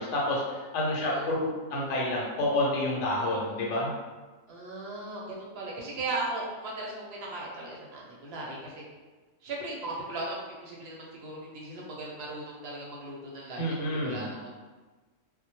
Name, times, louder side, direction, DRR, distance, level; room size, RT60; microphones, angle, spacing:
voice 1, 0.0-3.9 13.6-14.2, left 1 dB, 70° left, -3 dB, 0.9 m, -29 dB
voice 2, 4.5-8.8 9.4-13.7 14.0-14.5, right 2 dB, 60° right, -3 dB, 0.7 m, -37 dB
2.1 x 2.1 x 2.8 m, 1.3 s
omnidirectional pair, 1.4 m